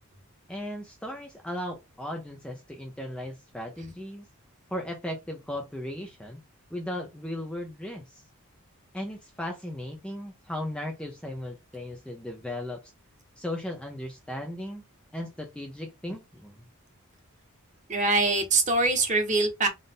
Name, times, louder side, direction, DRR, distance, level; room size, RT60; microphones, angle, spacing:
voice 1, 0.5-4.3 4.7-6.4 6.7-8.2 8.9-12.8 13.4-14.9 15.1-16.6, left 1 dB, 5° left, 0.6 m, -36 dB
voice 2, 17.9-19.7, right 3 dB, 35° right, 1.1 m, -23 dB
3.9 x 2.5 x 3.6 m
head